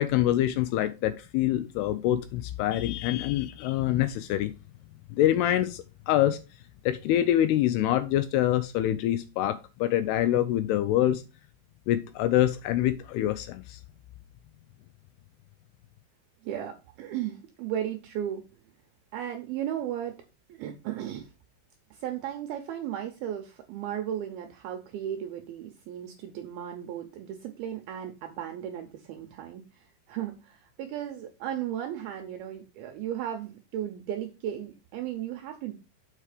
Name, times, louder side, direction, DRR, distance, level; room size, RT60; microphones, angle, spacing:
voice 1, 0.0-4.5 5.1-6.4 6.9-11.2 11.9-13.8, left 12 dB, 85° left, 2.3 m, -25 dB
voice 2, 16.4-18.4 19.1-20.2 20.5-21.3 21.9-35.7, right 10 dB, 80° right, 2.3 m, -35 dB
7.4 x 4.8 x 4.9 m
omnidirectional pair, 5.1 m